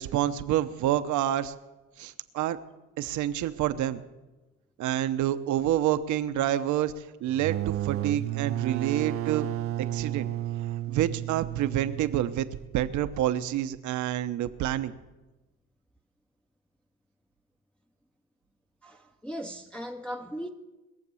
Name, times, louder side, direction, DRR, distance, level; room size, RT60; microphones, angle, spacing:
voice 1, 0.0-1.5 2.0-2.6 3.0-4.0 4.8-6.9 7.2-9.5 9.8-10.3 10.9-12.5 12.7-14.9, right 12 dB, 70° right, 0.9 m, -28 dB
sound 1, 7.3-12.8, right 14 dB, 50° right, 0.4 m, -32 dB
voice 2, 18.8-20.5, equal, 5° left, 0.7 m, -38 dB
21.0 x 7.2 x 7.0 m
cardioid pair, 95°, 30 cm